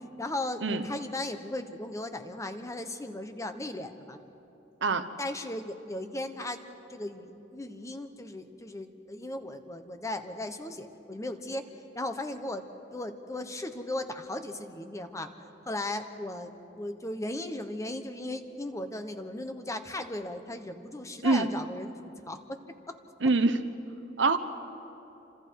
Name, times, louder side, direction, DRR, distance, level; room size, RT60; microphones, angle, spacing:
voice 1, 0.2-4.2 5.2-6.6 6.9-11.6 11.9-12.6 12.9-15.3 15.6-21.9 22.3-22.6, left 1 dB, 15° left, 7 dB, 1.1 m, -36 dB
voice 2, 23.2-23.6 24.2-24.4, right 3 dB, 75° right, 9 dB, 1.1 m, -24 dB
29.0 x 26.0 x 4.7 m, 3.0 s
head